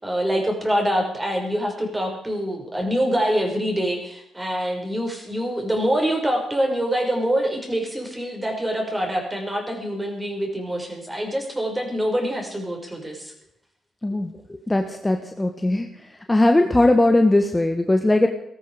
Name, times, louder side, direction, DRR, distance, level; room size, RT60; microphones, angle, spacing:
voice 1, 0.0-13.3, equal, 15° right, 3 dB, 5.9 m, -25 dB
voice 2, 14.7-15.9 16.3-18.3, left 2 dB, 15° left, 6 dB, 1.5 m, -19 dB
18.5 x 13.5 x 5.1 m, 0.74 s
supercardioid pair, 55°, 0 cm